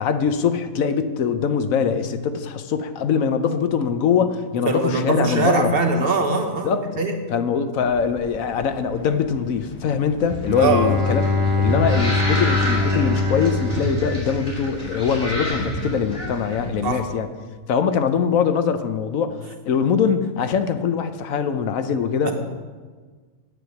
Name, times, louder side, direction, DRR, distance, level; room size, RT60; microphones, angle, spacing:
voice 1, 0.0-5.7 6.6-6.9 7.3-11.2 11.6-17.3 17.7-22.3, left 6 dB, 80° left, 9 dB, 1.2 m, -22 dB
voice 2, 4.6-7.1 10.6-10.9 16.8-17.0 22.2-22.3, right 3 dB, 45° right, 4 dB, 1.2 m, -21 dB
sound 1, 7.8-16.9, left 1 dB, 10° left, 0.9 m, -40 dB
sound 2, 10.2-16.5, left 1 dB, 40° left, 3.4 m, -29 dB
Bowed string instrument, 10.5-15.1, left 3 dB, 25° right, 0.5 m, -23 dB
9.6 x 8.1 x 7.0 m, 1.5 s
omnidirectional pair, 1.4 m